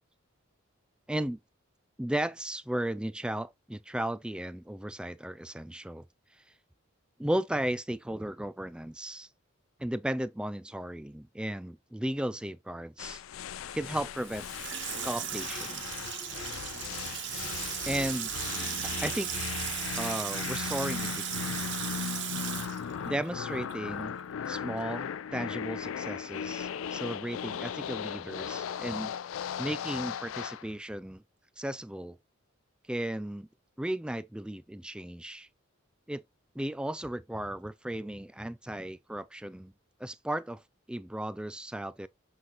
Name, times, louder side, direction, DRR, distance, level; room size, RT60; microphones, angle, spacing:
voice 1, 1.1-1.4 2.0-6.0 7.2-9.3 9.8-13.2 13.7-14.5 15.0-15.8 17.9-18.4 19.0-19.3 20.0-21.6 23.0-24.2 24.5-29.1 29.6-31.2 31.6-32.2 32.9-33.5 33.8-35.5 36.1-36.2 36.6-39.7 40.0-40.6 40.9-42.1, right 1 dB, 5° right, 0.3 m, -35 dB
sound 1, 13.0-30.7, left 8 dB, 75° left, 0.4 m, -37 dB
Water tap faucet / Sink (filling or washing), 14.2-23.9 24.2-24.3, right 9 dB, 60° right, 1.1 m, -37 dB
7.7 x 3.1 x 4.0 m
head